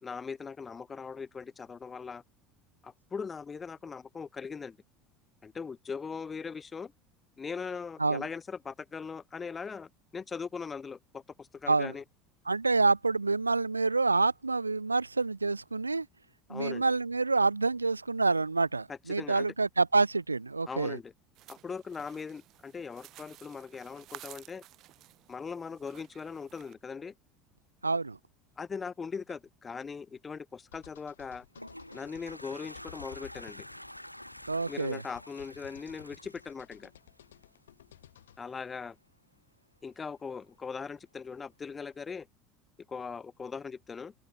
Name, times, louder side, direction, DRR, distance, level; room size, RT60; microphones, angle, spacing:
voice 1, 0.0-2.2 2.8-4.8 5.4-6.9 7.4-12.0 16.5-16.8 18.9-19.5 20.7-21.1 21.5-24.6 25.3-27.1 28.6-31.5 31.9-33.7 34.7-36.9 38.4-39.0 39.8-42.3 42.9-44.1, left 5 dB, 25° left, 1.7 m, -40 dB
voice 2, 12.5-16.1 16.5-21.0 27.8-28.2 34.5-35.0, right 3 dB, 85° right, 0.7 m, -27 dB
sound 1, 21.3-26.7, right 15 dB, 45° right, 3.3 m, -53 dB
sound 2, 30.7-38.4, left 11 dB, 70° left, 5.9 m, -55 dB
Toilet flush, 31.2-37.5, equal, 90° left, 5.8 m, -48 dB
figure-of-eight pair, 70°, 0 cm